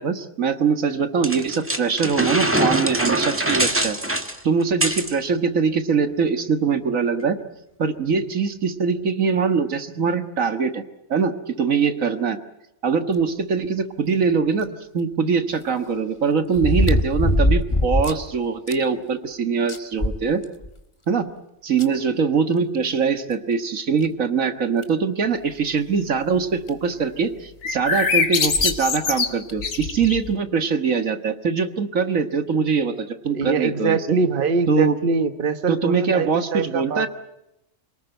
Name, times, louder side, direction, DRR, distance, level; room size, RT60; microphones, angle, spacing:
voice 1, 0.0-4.0 4.4-7.4 7.8-10.8 11.1-12.4 12.8-14.7 14.9-20.4 21.1-21.3 21.6-34.2 34.7-35.0 35.7-37.1, right 5 dB, 80° right, 8 dB, 2.0 m, -22 dB
sound 1, 1.2-5.1, right 1 dB, 10° right, 1.7 m, -23 dB
sound 2, 14.6-14.7 16.5-18.3 18.7-18.8 19.2-19.3 19.7-20.8 21.8-21.9 23.3-23.4 24.0-24.1 24.8-25.0 26.4-26.5 26.7-26.8 28.5-28.8 29.5-29.6, left 1 dB, 20° left, 1.6 m, -21 dB
sound 3, 27.6-30.3, left 5 dB, 75° left, 2.1 m, -23 dB
voice 2, 33.3-37.1, right 4 dB, 45° right, 10 dB, 1.3 m, -23 dB
27.0 x 19.5 x 9.0 m, 0.86 s
omnidirectional pair, 1.4 m